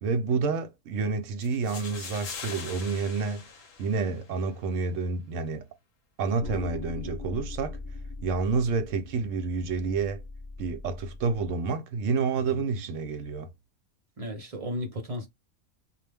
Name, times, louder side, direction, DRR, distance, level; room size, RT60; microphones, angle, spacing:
voice 1, 0.0-3.4 3.8-5.7 6.2-7.8 8.2-10.2 10.6-13.5, right 4 dB, 70° right, 0.9 m, -29 dB
sound 1, 1.4-4.4, left 6 dB, 75° left, 1.0 m, -42 dB
sound 2, 6.4-11.5, left 3 dB, 25° left, 0.5 m, -41 dB
voice 2, 14.2-15.3, left 1 dB, 35° right, 0.6 m, -34 dB
2.3 x 2.1 x 3.3 m
omnidirectional pair, 1.4 m